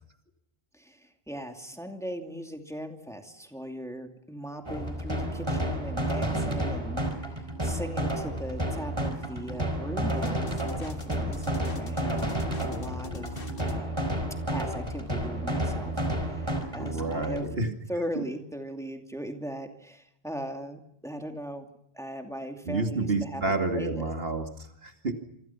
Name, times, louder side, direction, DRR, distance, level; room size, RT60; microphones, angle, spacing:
voice 1, 0.7-14.0 14.5-17.5 17.9-21.7 21.9-24.1, equal, 5° left, 4 dB, 2.6 m, -39 dB
sound 1, 4.7-17.5, right 1 dB, 25° right, 4.3 m, -31 dB
sound 2, 10.2-13.8, left 3 dB, 60° left, 2.1 m, -41 dB
voice 2, 16.6-17.7 18.2-18.3 22.7-25.1, right 2 dB, 65° right, 5 dB, 2.7 m, -30 dB
27.5 x 25.0 x 5.9 m, 0.75 s
omnidirectional pair, 1.1 m